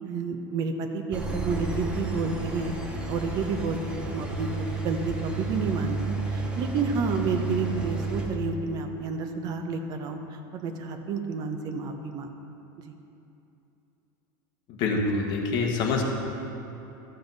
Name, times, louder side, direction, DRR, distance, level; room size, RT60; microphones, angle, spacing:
voice 1, 0.0-2.8 3.1-4.5 4.8-12.4 12.9-13.0, right 4 dB, 35° right, 6 dB, 0.7 m, -30 dB
Engine, 1.1-8.3, right 3 dB, 10° right, 0.9 m, -32 dB
voice 2, 14.7-16.0, left 4 dB, 40° left, 0 dB, 1.3 m, -26 dB
13.0 x 7.0 x 4.0 m, 2.8 s
supercardioid pair, 160°, 11 cm